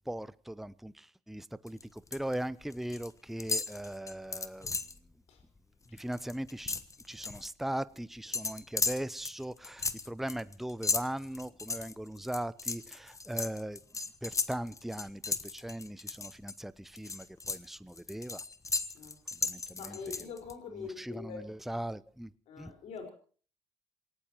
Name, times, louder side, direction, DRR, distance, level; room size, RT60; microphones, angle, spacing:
voice 1, 0.1-4.7 5.9-6.7 7.1-13.8 14.2-18.4 19.4-20.0 20.8-22.3 22.6-22.7, right 1 dB, ahead, 17 dB, 0.7 m, -39 dB
sound 1, 1.7-2.3 2.6-3.1 3.4-5.0 5.4-5.6 5.9-7.5 8.3-16.5 16.9-20.5, left 4 dB, 25° left, 1.3 m, -36 dB
voice 2, 19.8-21.5 22.5-23.1, left 5 dB, 70° left, 3 dB, 4.8 m, -44 dB
27.5 x 17.5 x 3.0 m, 0.42 s
hypercardioid pair, 60°, 12 cm